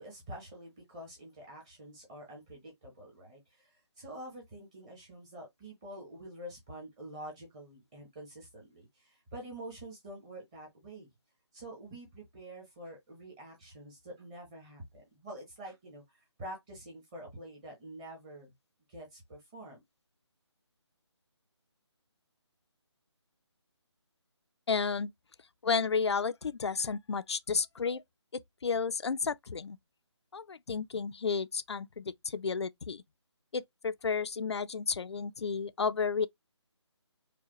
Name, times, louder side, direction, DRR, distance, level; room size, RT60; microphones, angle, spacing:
voice 1, 0.0-11.1 11.5-18.5 18.9-19.8, right 1 dB, 10° right, 0.9 m, -47 dB
voice 2, 24.7-25.1 25.6-28.0 28.3-29.8 30.3-33.0 33.5-36.3, left 5 dB, 65° left, 0.5 m, -32 dB
4.8 x 2.2 x 3.0 m
figure-of-eight pair, 170°, 15 cm